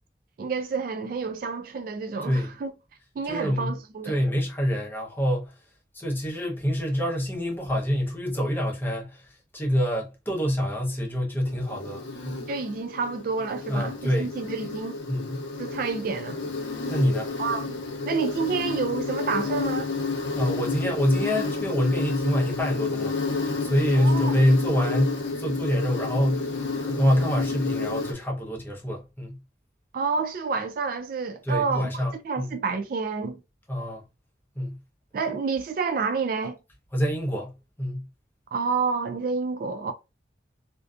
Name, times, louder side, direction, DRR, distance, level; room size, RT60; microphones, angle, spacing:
voice 1, 0.4-2.7 3.2-4.2 12.5-15.0 15.6-16.4 17.4-17.8 18.0-19.9 23.9-24.4 29.9-33.4 35.1-36.6 38.5-39.9, right 5 dB, 50° right, 0.3 m, -29 dB
voice 2, 3.3-3.7 4.0-5.5 5.9-12.4 13.7-14.3 15.1-15.5 16.9-17.3 20.3-29.4 31.5-32.5 33.7-34.0 34.6-34.8 36.9-37.5 37.8-38.1, equal, 10° left, 0.7 m, -26 dB
Insect, 11.4-28.1, left 4 dB, 80° left, 0.6 m, -30 dB
2.5 x 2.3 x 2.3 m
head